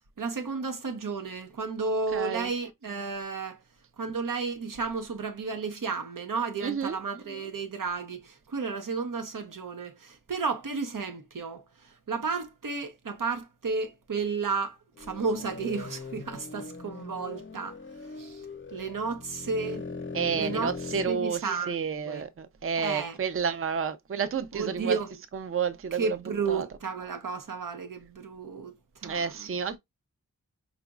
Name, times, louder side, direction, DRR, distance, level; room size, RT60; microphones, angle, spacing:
voice 1, 0.2-3.6 4.0-17.8 18.0-19.9 20.3-20.7 21.1-21.8 22.0-22.2 22.8-23.2 24.5-25.1 25.9-29.5, right 4 dB, 90° right, 0.8 m, -33 dB
voice 2, 2.1-2.5 6.6-7.0 20.1-25.0 25.3-26.2 26.5-26.7 29.0-29.8, right 6 dB, 45° right, 0.5 m, -30 dB
sound 1, 15.0-21.2, left 4 dB, 40° left, 0.5 m, -40 dB
5.0 x 3.0 x 2.3 m
wide cardioid pair, 75°, 31 cm